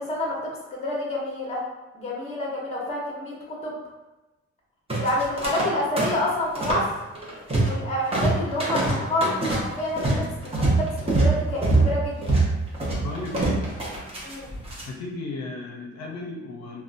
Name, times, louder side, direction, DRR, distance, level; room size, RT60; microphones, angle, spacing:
voice 1, 0.0-1.6 1.9-3.8 5.0-6.9 7.6-12.4 14.2-14.5, left 1 dB, 20° left, -4 dB, 0.9 m, -28 dB
sound 1, 4.9-5.7 6.0-6.9 7.2-7.8 8.1-14.8, right 2 dB, 20° right, 0.9 m, -24 dB
voice 2, 12.9-13.7 14.9-16.8, left 3 dB, 60° left, 0 dB, 0.6 m, -34 dB
3.6 x 2.3 x 2.5 m, 1.1 s
cardioid pair, 90°, 30 cm